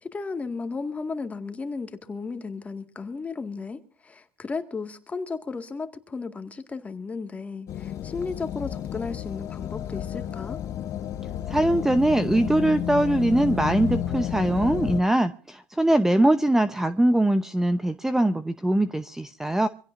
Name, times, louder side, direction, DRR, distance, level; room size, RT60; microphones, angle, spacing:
voice 1, 0.0-10.6, left 4 dB, 20° left, 2.0 m, -34 dB
sound 1, 7.7-15.0, left 10 dB, 45° left, 1.0 m, -31 dB
voice 2, 11.5-19.7, right 1 dB, 5° right, 0.8 m, -22 dB
25.5 x 16.5 x 2.6 m
cardioid pair, 120°, 7 cm